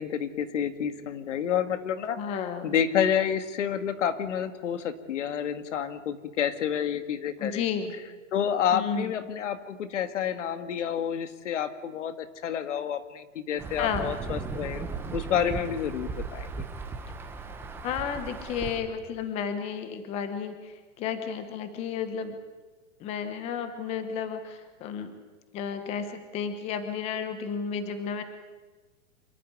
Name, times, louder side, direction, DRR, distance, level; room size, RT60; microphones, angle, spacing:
voice 1, 0.0-7.6 8.3-16.5, left 8 dB, 70° left, 10 dB, 2.0 m, -29 dB
voice 2, 2.2-2.7 7.4-7.9 8.7-9.1 13.8-14.2 17.8-22.4 23.0-25.1 25.5-28.2, left 7 dB, 15° left, 9 dB, 1.0 m, -32 dB
Insect / Thunder / Rain, 13.6-18.8, right 4 dB, 5° right, 1.1 m, -37 dB
26.5 x 12.0 x 9.7 m, 1.3 s
supercardioid pair, 170°, 38 cm